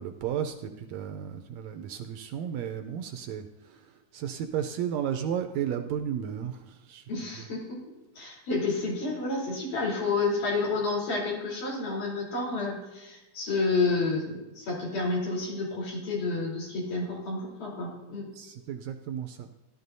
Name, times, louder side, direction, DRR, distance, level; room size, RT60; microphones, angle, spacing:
voice 1, 0.0-3.5 3.7-3.8 4.1-7.0 18.4-19.5, right 9 dB, 80° right, 7 dB, 1.7 m, -33 dB
voice 2, 7.1-7.8 8.2-18.2, left 3 dB, 85° left, -4 dB, 5.2 m, -30 dB
15.5 x 12.0 x 2.7 m, 1.1 s
omnidirectional pair, 3.6 m